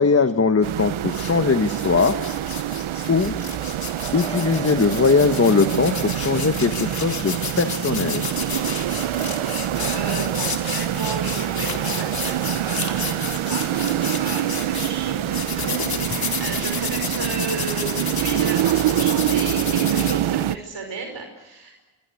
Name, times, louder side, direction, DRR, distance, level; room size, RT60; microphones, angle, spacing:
voice 1, 0.0-2.2 3.1-3.4 4.1-8.2, left 4 dB, 30° left, 8 dB, 1.3 m, -20 dB
sound 1, 0.6-20.6, right 12 dB, 85° right, 0.9 m, -25 dB
sound 2, 1.1-1.3 1.7-14.9 15.3-20.1, left 5 dB, 50° left, 3.6 m, -31 dB
voice 2, 9.0-21.8, right 4 dB, 65° right, 4 dB, 5.5 m, -34 dB
26.0 x 24.0 x 8.4 m, 1.1 s
cardioid pair, 85°, 47 cm